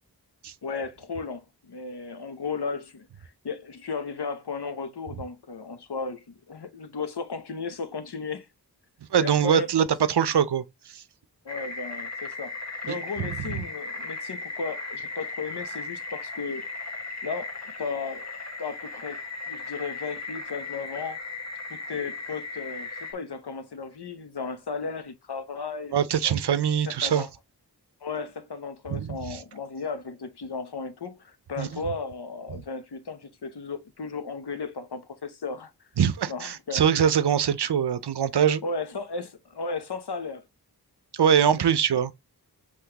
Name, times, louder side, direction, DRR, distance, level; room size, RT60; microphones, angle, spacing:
voice 1, 0.6-8.5 9.2-10.1 11.4-12.5 12.8-16.7 17.2-18.3 18.6-19.2 19.5-21.2 21.7-25.9 26.2-26.4 26.9-27.3 28.0-35.7 36.3-36.8 38.6-40.4 41.2-41.6, left 4 dB, 80° left, 0.9 m, -35 dB
voice 2, 9.1-10.6 10.9-11.0 12.9-13.3 13.5-13.6 25.9-27.3 28.9-29.4 31.6-31.7 36.0-38.6 41.1-42.1, right 8 dB, 85° right, 0.6 m, -23 dB
sound 1, 11.5-23.1, left 3 dB, 40° left, 1.2 m, -37 dB
5.8 x 3.1 x 2.8 m
wide cardioid pair, 60°, 39 cm